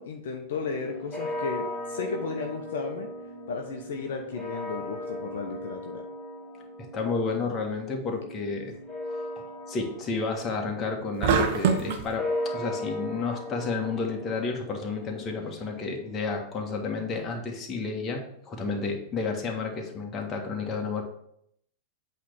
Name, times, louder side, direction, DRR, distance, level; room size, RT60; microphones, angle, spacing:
voice 1, 0.0-3.1 3.5-6.0, left 5 dB, 60° left, 2 dB, 0.9 m, -34 dB
sound 1, 0.6-17.9, left 1 dB, 5° left, 2.7 m, -38 dB
voice 2, 6.8-8.7 9.4-21.0, left 4 dB, 25° left, 1 dB, 1.7 m, -31 dB
sound 2, 11.2-12.1, right 6 dB, 55° right, 0.9 m, -23 dB
8.3 x 3.5 x 6.3 m, 0.72 s
figure-of-eight pair, 95°, 0 cm